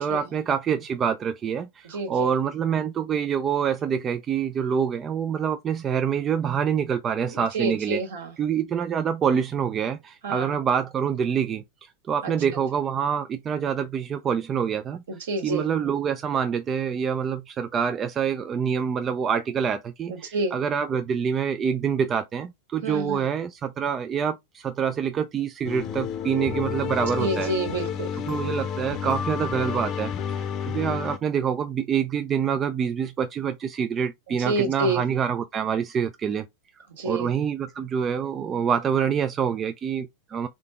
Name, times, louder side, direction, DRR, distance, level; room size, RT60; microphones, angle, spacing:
voice 1, 0.0-8.0 8.4-15.0 15.4-27.5 28.3-36.5 37.0-40.5, right 7 dB, 25° right, 0.4 m, -26 dB
voice 2, 1.8-2.3 7.3-8.3 10.2-10.6 12.2-12.3 15.1-15.6 20.1-20.5 22.8-23.2 27.2-28.1 34.4-35.0 37.0-37.3, right 2 dB, 60° right, 1.6 m, -28 dB
sound 1, 25.6-31.2, left 8 dB, 35° left, 0.7 m, -30 dB
3.7 x 3.7 x 3.4 m
figure-of-eight pair, 90°, 0 cm